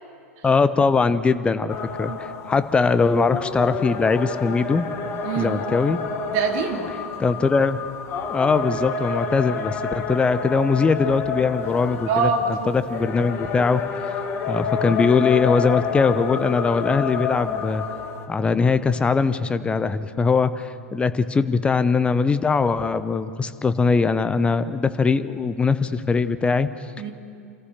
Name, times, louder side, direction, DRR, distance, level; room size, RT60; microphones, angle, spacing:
voice 1, 0.4-4.9 5.4-6.0 7.2-7.8 8.3-12.3 12.7-14.1 14.5-17.8 18.3-26.7, left 4 dB, 15° left, 12 dB, 0.8 m, -21 dB
sound 1, 1.7-18.3, left 5 dB, 30° left, 1.8 m, -29 dB
voice 2, 5.2-5.6 6.3-6.9 12.1-12.8 27.0-27.1, right 5 dB, 45° right, 3 dB, 2.7 m, -24 dB
27.0 x 14.5 x 6.7 m, 2.5 s
figure-of-eight pair, 95°, 8 cm